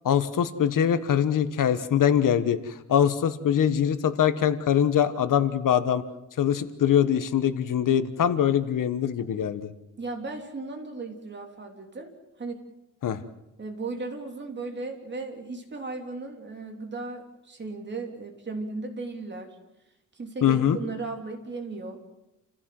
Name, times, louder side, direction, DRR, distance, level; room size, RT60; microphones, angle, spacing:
voice 1, 0.0-6.0 6.4-9.7 13.0-13.2 20.4-20.8, left 9 dB, 75° left, 11 dB, 1.4 m, -23 dB
voice 2, 10.0-12.1 12.4-12.6 13.6-19.6 20.1-22.0, right 3 dB, 35° right, 3 dB, 3.3 m, -36 dB
29.0 x 15.5 x 7.8 m, 0.91 s
wide cardioid pair, 150°, 32 cm